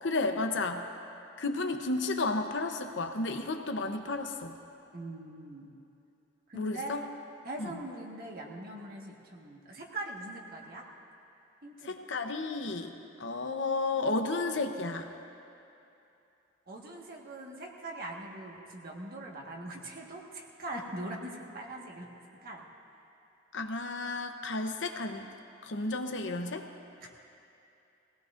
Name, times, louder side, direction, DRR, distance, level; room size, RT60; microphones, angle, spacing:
voice 1, 0.0-0.8 1.4-4.5 6.5-7.0 7.6-7.8 11.8-12.9 13.2-15.1 23.5-25.3 25.6-26.7, left 3 dB, 75° left, 5 dB, 0.9 m, -32 dB
voice 2, 4.9-5.7 6.5-7.1 7.4-10.8 11.6-11.9 16.7-22.1 22.4-22.6 27.0-27.1, right 1 dB, 55° right, -1 dB, 1.6 m, -42 dB
20.5 x 17.5 x 2.6 m, 2.8 s
head